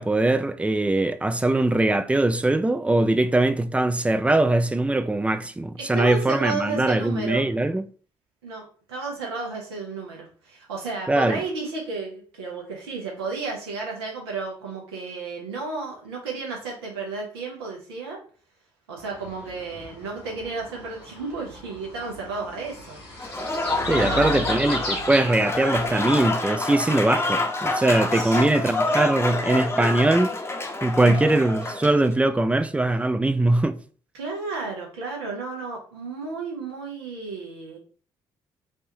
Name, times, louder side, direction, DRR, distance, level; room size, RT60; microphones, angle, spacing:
voice 1, 0.0-7.8 11.1-11.4 23.9-30.3 30.8-33.8, right 2 dB, 10° right, 0.4 m, -21 dB
voice 2, 5.8-7.4 8.4-18.2 18.9-23.3 23.9-24.6 28.1-28.4 31.0-31.2 34.1-37.8, right 4 dB, 80° right, 0.9 m, -33 dB
sound 1, 19.0-26.3, left 1 dB, 80° left, 1.1 m, -36 dB
Applause / Crowd, 23.2-32.0, left 2 dB, 20° left, 0.7 m, -27 dB
3.3 x 2.5 x 2.8 m
figure-of-eight pair, 45°, 13 cm